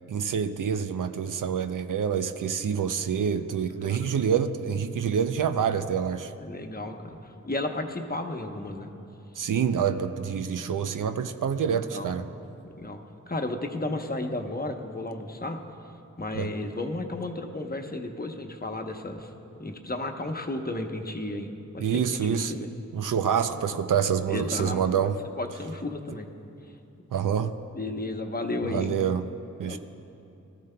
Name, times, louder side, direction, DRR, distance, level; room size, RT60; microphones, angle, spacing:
voice 1, 0.1-6.3 9.4-12.2 16.3-16.5 21.8-22.5 22.9-25.2 27.1-27.5 28.6-29.3 29.6-29.8, right 7 dB, 85° right, 9 dB, 0.5 m, -27 dB
voice 2, 6.4-8.9 11.7-12.2 12.8-13.0 13.3-15.6 16.2-19.3 19.6-22.0 22.3-22.7 24.3-25.1 25.4-26.3 27.7-28.9 29.6-29.8, left 2 dB, 30° left, 4 dB, 0.9 m, -33 dB
18.5 x 13.5 x 2.2 m, 2.7 s
wide cardioid pair, 60°, 31 cm